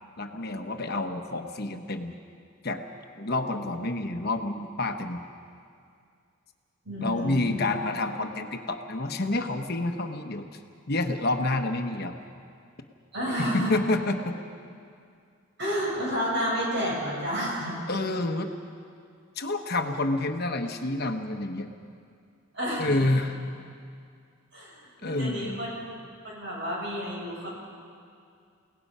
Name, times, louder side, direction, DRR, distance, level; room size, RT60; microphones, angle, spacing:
voice 1, 0.2-2.1 2.6-2.8 3.2-5.2 7.0-10.5 10.9-12.2 13.4-14.4 17.9-18.5 19.4-21.7 22.8-23.4 25.0-25.6, left 2 dB, 50° left, 5 dB, 1.0 m, -28 dB
voice 2, 6.8-7.6 13.1-13.8 15.6-17.8 22.5-23.0 24.5-27.5, equal, 55° right, -4 dB, 7.5 m, -31 dB
30.0 x 18.0 x 5.6 m, 2.3 s
head